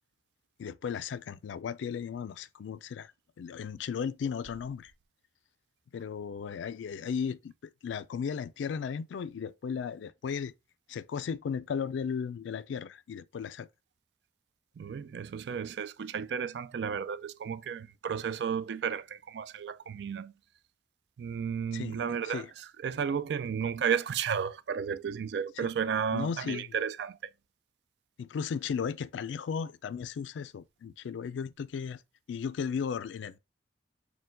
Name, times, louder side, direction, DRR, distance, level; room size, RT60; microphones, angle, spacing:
voice 1, 0.6-3.1 3.4-4.9 5.9-10.5 10.9-13.7 21.7-22.0 22.2-22.5 25.6-25.7 26.1-26.7 28.2-32.0 32.3-33.4, left 6 dB, 80° left, 0.3 m, -35 dB
voice 2, 14.8-20.3 21.2-22.4 22.8-27.3, right 7 dB, 60° right, 0.3 m, -33 dB
4.4 x 2.2 x 3.7 m
head